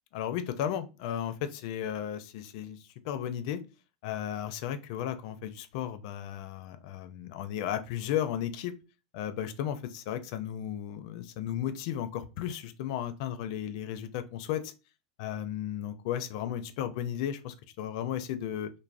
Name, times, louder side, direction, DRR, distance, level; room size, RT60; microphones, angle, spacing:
voice 1, 0.1-3.6 4.0-8.7 9.1-14.7 15.2-18.7, left 10 dB, 60° left, 11 dB, 0.4 m, -34 dB
3.3 x 2.1 x 2.5 m, 0.30 s
supercardioid pair, 120°, 4 cm